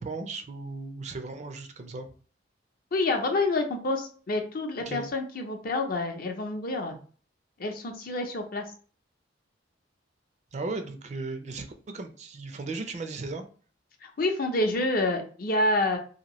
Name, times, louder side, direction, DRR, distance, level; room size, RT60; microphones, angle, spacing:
voice 1, 0.0-2.1 4.9-5.0 10.5-13.5, right 3 dB, 40° right, 7 dB, 0.4 m, -36 dB
voice 2, 2.9-7.0 7.6-8.6 14.0-16.0, left 2 dB, 50° left, 5 dB, 0.6 m, -28 dB
2.8 x 2.6 x 2.9 m, 0.41 s
head